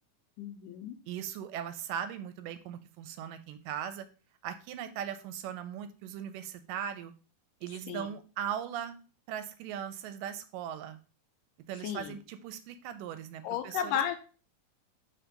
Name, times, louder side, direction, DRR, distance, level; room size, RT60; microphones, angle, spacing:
voice 1, 0.4-1.0 7.9-8.1 11.8-12.2 13.4-14.2, left 9 dB, 80° left, 8 dB, 2.1 m, -33 dB
voice 2, 1.1-4.1 4.4-7.1 7.6-9.0 9.3-11.0 11.7-13.9, right 9 dB, 85° right, 11 dB, 2.1 m, -39 dB
4.6 x 4.1 x 5.1 m, 0.36 s
omnidirectional pair, 3.9 m